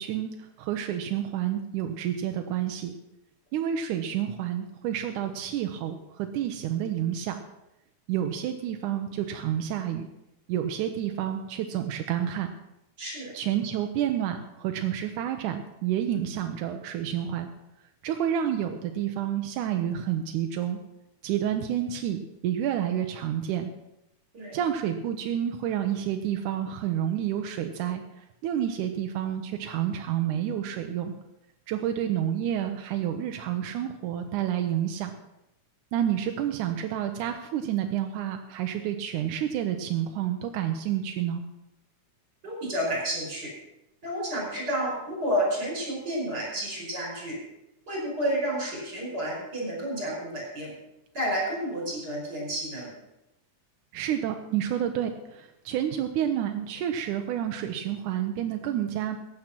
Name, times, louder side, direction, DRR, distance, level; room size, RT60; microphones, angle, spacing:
voice 1, 0.0-2.9 3.5-7.4 8.1-10.1 10.5-12.5 13.3-17.5 18.0-20.8 21.2-23.7 24.5-31.1 31.7-35.1 35.9-41.4 53.9-59.2, right 10 dB, 90° right, 5 dB, 2.3 m, -29 dB
voice 2, 13.0-13.3 24.3-24.6 42.4-43.5 44.0-47.4 47.9-50.7 51.1-52.9, equal, 35° right, -2 dB, 5.6 m, -30 dB
15.0 x 9.3 x 5.9 m, 0.89 s
omnidirectional pair, 3.5 m